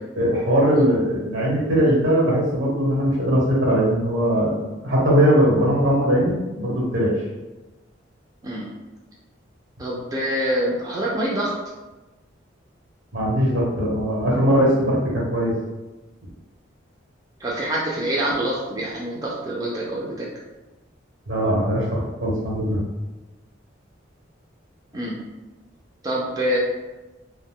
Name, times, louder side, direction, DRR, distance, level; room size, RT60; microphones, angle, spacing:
voice 1, 0.2-7.1 13.1-15.5 21.3-22.8, equal, 75° right, -4 dB, 1.0 m, -20 dB
voice 2, 9.8-11.5 17.4-20.3 24.9-25.1 26.0-26.6, right 1 dB, 20° right, -4 dB, 0.4 m, -25 dB
2.5 x 2.1 x 3.5 m, 1.1 s
head